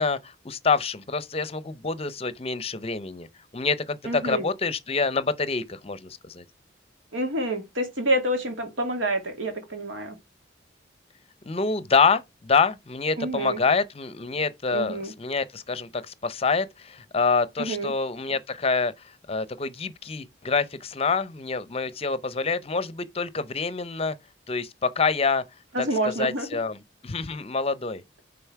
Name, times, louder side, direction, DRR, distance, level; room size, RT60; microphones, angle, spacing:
voice 1, 0.0-3.3 3.5-6.4 11.4-24.2 24.5-25.4 25.8-28.0, left 4 dB, 30° left, 0.6 m, -26 dB
voice 2, 4.0-4.5 7.1-10.2 13.2-13.6 14.7-15.1 17.6-17.9 25.7-26.5, right 1 dB, 90° right, 2.3 m, -28 dB
9.2 x 3.8 x 4.6 m
head